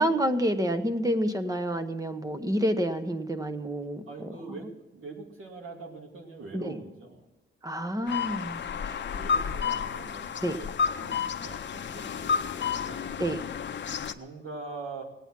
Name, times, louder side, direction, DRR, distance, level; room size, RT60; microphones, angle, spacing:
voice 1, 0.0-4.0 6.5-6.8 7.6-9.0 10.4-10.6 13.2-13.4, right 1 dB, 15° right, 9 dB, 0.9 m, -28 dB
voice 2, 4.1-7.3 8.7-13.1 13.8-15.0, right 3 dB, 80° right, 1 dB, 2.5 m, -43 dB
sound 1, 8.1-14.1, left 6 dB, 60° left, 0.6 m, -31 dB
18.0 x 8.9 x 6.0 m, 0.99 s
wide cardioid pair, 115°, 21 cm